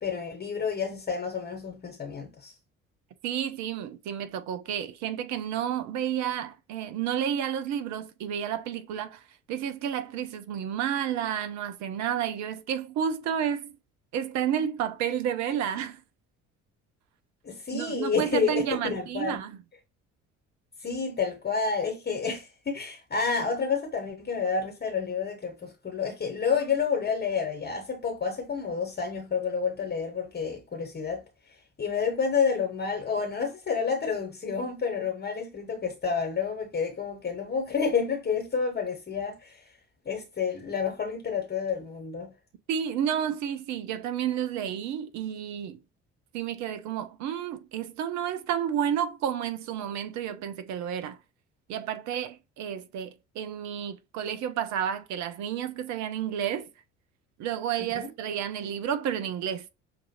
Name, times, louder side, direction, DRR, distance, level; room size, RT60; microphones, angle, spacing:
voice 1, 0.0-2.5 17.4-19.4 20.8-31.2 31.8-39.6 40.0-42.3 57.8-58.1, left 5 dB, 25° left, 1.1 m, -29 dB
voice 2, 3.2-9.2 9.5-13.7 14.1-16.0 17.7-19.5 42.7-45.8 46.3-51.2 51.7-56.7 57.4-59.7, right 9 dB, 50° right, 0.7 m, -31 dB
5.9 x 2.5 x 2.9 m
figure-of-eight pair, 55°, 38 cm